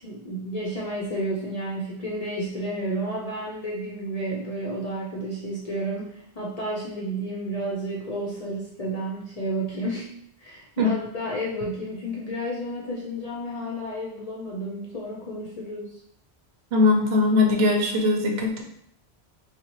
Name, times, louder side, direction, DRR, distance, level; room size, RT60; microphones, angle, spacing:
voice 1, 0.0-10.1 10.4-15.9, right 1 dB, 45° left, -5 dB, 0.7 m, -31 dB
voice 2, 16.7-18.6, left 3 dB, 70° right, 1 dB, 0.9 m, -20 dB
4.1 x 2.1 x 2.9 m, 0.71 s
omnidirectional pair, 1.1 m